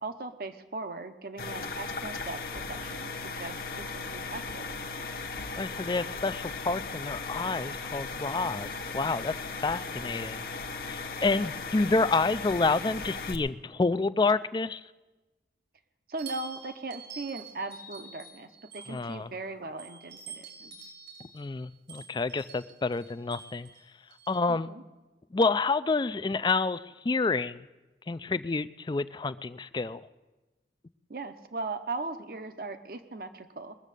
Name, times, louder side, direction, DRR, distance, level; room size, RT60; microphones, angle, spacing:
voice 1, 0.0-4.6 8.4-8.7 16.1-20.8 24.5-24.8 31.1-33.8, right 3 dB, 55° right, 9 dB, 0.8 m, -39 dB
sound 1, 1.4-13.3, left 4 dB, 55° left, 1.0 m, -37 dB
voice 2, 5.6-9.3 9.6-10.4 10.8-14.8 18.9-19.3 21.3-23.7 24.3-24.7 25.3-27.6 28.1-30.0, left 3 dB, 25° left, 14 dB, 0.4 m, -28 dB
sound 2, 16.2-19.3 19.8-24.4, right 5 dB, 85° right, 5.3 m, -47 dB
21.5 x 7.3 x 6.7 m, 1.1 s
head